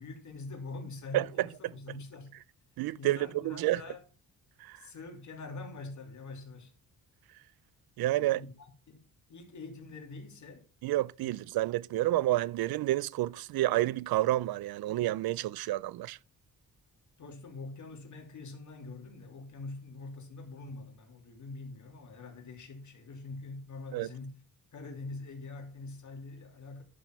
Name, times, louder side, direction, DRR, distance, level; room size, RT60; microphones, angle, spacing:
voice 1, 0.0-2.4 2.9-4.0 4.8-6.7 8.0-9.0 9.3-10.7 11.2-11.3 17.2-24.4 24.7-26.8, left 3 dB, 55° left, 2.8 m, -44 dB
voice 2, 1.1-1.5 2.8-3.8 4.6-4.8 8.0-8.4 10.8-16.2 23.9-24.1, right 15 dB, 85° right, 0.5 m, -29 dB
11.0 x 6.2 x 4.5 m
cardioid pair, 95°, 36 cm